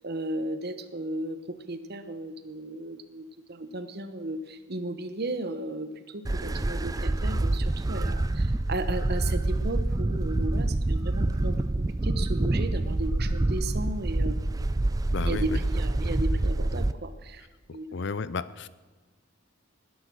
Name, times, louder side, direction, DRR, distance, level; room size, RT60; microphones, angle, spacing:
voice 1, 0.0-14.4 15.2-17.9, right 1 dB, 50° right, 10 dB, 1.1 m, -35 dB
sound 1, 6.3-16.9, right 2 dB, 15° right, 0.4 m, -27 dB
voice 2, 15.1-15.6 17.9-18.7, left 4 dB, 55° left, 16 dB, 0.6 m, -32 dB
19.5 x 10.5 x 6.3 m, 1.3 s
head